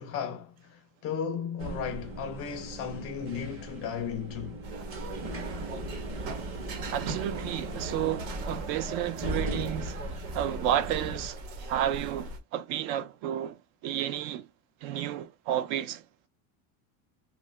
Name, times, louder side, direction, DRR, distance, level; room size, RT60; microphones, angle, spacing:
voice 1, 0.0-4.6 11.6-11.7, left 7 dB, 35° left, 0.4 m, -35 dB
sound 1, 1.6-11.3, right 1 dB, 30° right, 0.8 m, -38 dB
sound 2, 4.6-12.4, right 2 dB, 75° right, 1.3 m, -39 dB
voice 2, 6.9-10.0 10.3-14.5 14.8-16.0, right 11 dB, 60° right, 0.5 m, -31 dB
2.8 x 2.4 x 3.1 m
cardioid pair, 160°, 45 cm